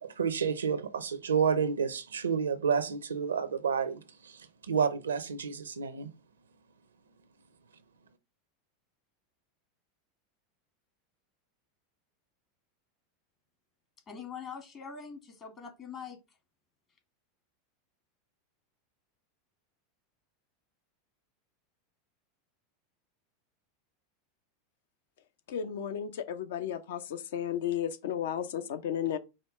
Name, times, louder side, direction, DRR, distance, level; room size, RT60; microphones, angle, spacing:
voice 1, 0.0-6.1, right 6 dB, 80° right, 0.5 m, -30 dB
voice 2, 14.1-16.2, left 6 dB, 35° left, 1.4 m, -43 dB
voice 3, 25.5-29.2, left 9 dB, 65° left, 0.6 m, -33 dB
4.9 x 2.2 x 4.8 m
figure-of-eight pair, 85°, 0 cm